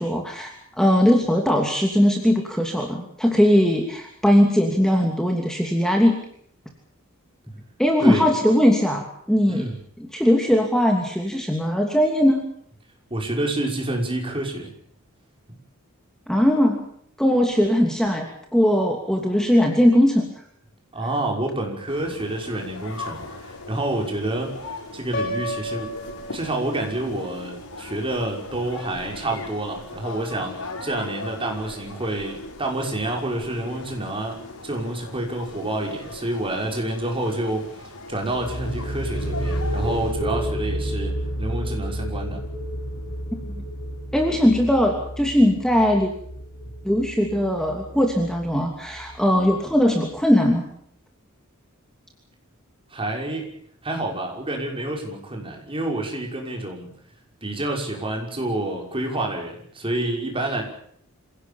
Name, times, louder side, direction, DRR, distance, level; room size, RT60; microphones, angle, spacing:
voice 1, 0.0-6.2 7.8-9.7 10.0-12.4 16.3-16.8 17.2-18.3 18.5-20.3 43.3-43.5 44.1-46.1 46.8-50.6, equal, 5° left, 2 dB, 2.9 m, -19 dB
voice 2, 13.1-14.7 20.9-24.5 24.9-25.9 26.3-42.4 52.9-53.5 53.8-56.9 57.4-60.6, right 1 dB, 25° right, 1 dB, 5.9 m, -28 dB
sound 1, 21.9-40.1, left 2 dB, 90° left, 5.9 m, -39 dB
Piano, 25.1-27.1, left 1 dB, 50° left, 6.4 m, -31 dB
sound 2, 38.2-49.8, equal, 70° left, 3.6 m, -31 dB
27.0 x 17.5 x 7.1 m, 0.65 s
head